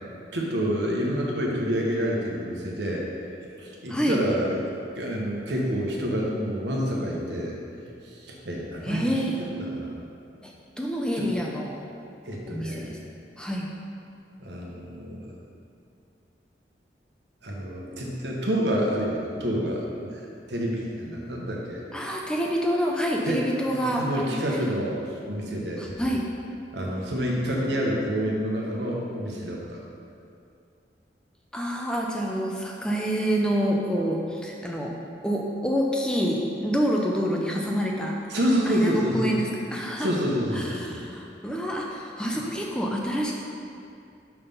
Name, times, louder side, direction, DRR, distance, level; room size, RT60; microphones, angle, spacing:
voice 1, 0.3-3.0 3.6-9.9 11.2-11.3 12.2-12.9 14.4-15.3 17.4-20.2 20.5-21.8 23.2-25.0 25.3-25.9 26.7-29.8 38.3-39.4 40.0-40.9 42.3-42.5, equal, 80° right, -2 dB, 1.2 m, -28 dB
voice 2, 8.8-9.4 10.4-11.8 12.5-13.0 13.4-13.7 21.9-24.4 25.8-26.3 31.5-35.0 35.2-38.2 38.6-40.1 40.5-43.3, equal, 5° left, -1 dB, 0.5 m, -27 dB
5.7 x 5.6 x 5.5 m, 2.5 s
head